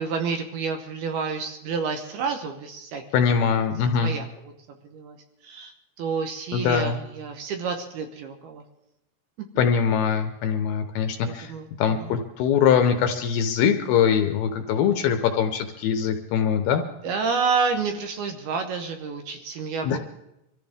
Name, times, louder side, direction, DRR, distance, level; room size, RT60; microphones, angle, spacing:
voice 1, 0.0-3.0 4.0-4.5 4.8-5.2 5.4-5.7 6.0-8.6 9.4-9.5 11.2-11.7 12.0-12.1 17.0-20.0, right 5 dB, 70° right, 6 dB, 2.6 m, -29 dB
voice 2, 3.1-4.1 6.5-7.0 9.6-11.5 11.8-16.8 19.8-20.0, left 7 dB, 75° left, 6 dB, 2.4 m, -22 dB
24.5 x 14.0 x 3.6 m, 0.87 s
omnidirectional pair, 5.2 m